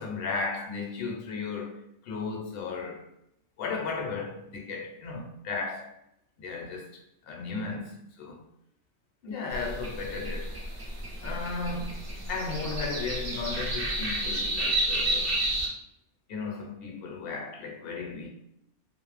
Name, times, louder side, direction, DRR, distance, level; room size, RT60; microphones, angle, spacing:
voice 1, 0.0-3.1 3.6-5.9 6.4-8.5 9.2-10.6 11.2-15.4 16.3-18.3, left 4 dB, 60° left, 0.8 m, -35 dB
sound 1, 9.5-15.7, right 1 dB, 40° right, 0.4 m, -31 dB
2.5 x 2.0 x 3.1 m
omnidirectional pair, 1.2 m